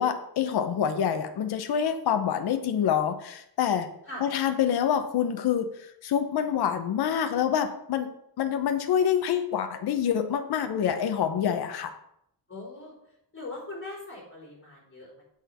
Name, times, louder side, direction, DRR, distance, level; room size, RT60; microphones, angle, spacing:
voice 1, 0.0-3.9 4.2-5.7 6.0-8.1 8.4-11.9, left 8 dB, 60° left, 7 dB, 0.9 m, -26 dB
voice 2, 12.5-12.9 13.3-15.2, left 2 dB, 30° left, -2 dB, 3.8 m, -40 dB
8.0 x 4.7 x 6.9 m, 0.74 s
wide cardioid pair, 145°, 42 cm